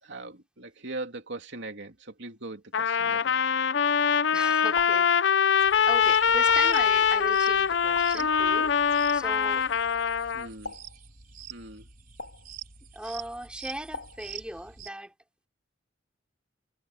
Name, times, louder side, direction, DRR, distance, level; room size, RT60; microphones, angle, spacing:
voice 1, 0.0-3.4 10.3-10.7 11.5-11.9, right 2 dB, 65° right, 3.1 m, -40 dB
Trumpet, 2.7-10.5, left 7 dB, 70° left, 0.6 m, -23 dB
voice 2, 4.3-8.8 9.1-9.7 12.9-15.1, right 1 dB, 5° right, 3.5 m, -38 dB
sound 1, 4.8-5.2 6.5-6.9 8.0-8.3 9.4-9.7 10.6-11.1 12.2-12.5 13.9-14.3, left 4 dB, 85° left, 2.7 m, -41 dB
sound 2, 5.5-14.9, right 8 dB, 50° right, 4.9 m, -46 dB
head